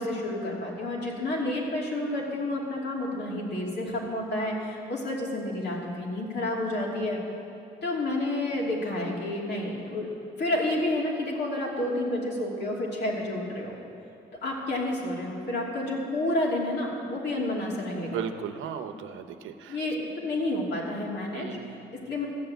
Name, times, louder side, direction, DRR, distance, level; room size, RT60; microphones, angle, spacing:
voice 1, 0.0-7.2 7.8-10.1 10.4-13.8 14.4-18.2 18.9-19.0 19.7-22.3, left 1 dB, 60° left, -3 dB, 3.0 m, -30 dB
voice 2, 18.0-19.7 21.3-21.7, right 8 dB, 80° right, 8 dB, 0.9 m, -36 dB
13.5 x 7.9 x 7.9 m, 2.8 s
cardioid pair, 90°, 20 cm